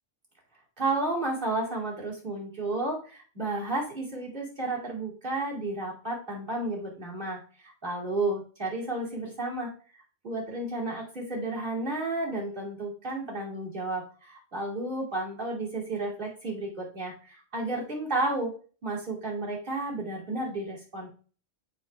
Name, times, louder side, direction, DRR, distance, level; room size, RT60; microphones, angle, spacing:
voice 1, 0.8-9.7 10.2-18.5 18.8-21.1, right 2 dB, 50° right, -4 dB, 2.9 m, -32 dB
6.9 x 5.2 x 3.5 m, 0.38 s
omnidirectional pair, 1.2 m